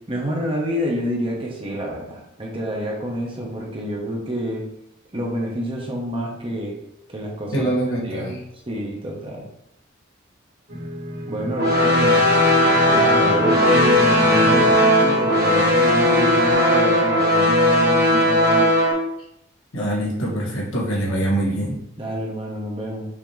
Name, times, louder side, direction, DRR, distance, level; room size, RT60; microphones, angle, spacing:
voice 1, 0.1-4.7 5.1-6.8 7.1-7.7 8.0-8.3 8.7-9.4 11.3-12.2 12.9-18.8 22.0-23.1, equal, 25° right, -2 dB, 0.9 m, -28 dB
voice 2, 7.5-8.4 19.7-21.8, right 1 dB, 85° left, -4 dB, 1.5 m, -24 dB
sound 1, 10.7-16.5, equal, 80° right, 1.7 m, -30 dB
sound 2, 11.6-18.9, left 1 dB, 50° right, 1.2 m, -17 dB
5.7 x 2.9 x 3.2 m, 0.78 s
head